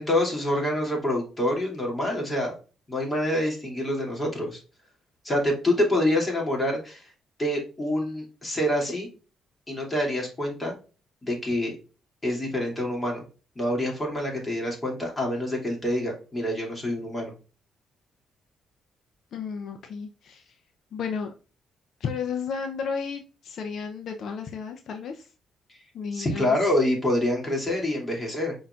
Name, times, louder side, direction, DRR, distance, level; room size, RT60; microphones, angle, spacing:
voice 1, 0.0-2.5 2.9-4.6 5.2-7.1 7.4-9.1 9.7-10.7 11.2-11.8 12.2-13.2 13.6-17.3 25.7-25.8 26.1-28.6, left 1 dB, 20° left, -1 dB, 2.6 m, -26 dB
voice 2, 19.3-20.6 20.9-21.3 22.0-25.3 25.9-26.6, left 6 dB, 65° left, 5 dB, 0.6 m, -33 dB
5.6 x 3.9 x 2.4 m, 0.34 s
cardioid pair, 90°, 0 cm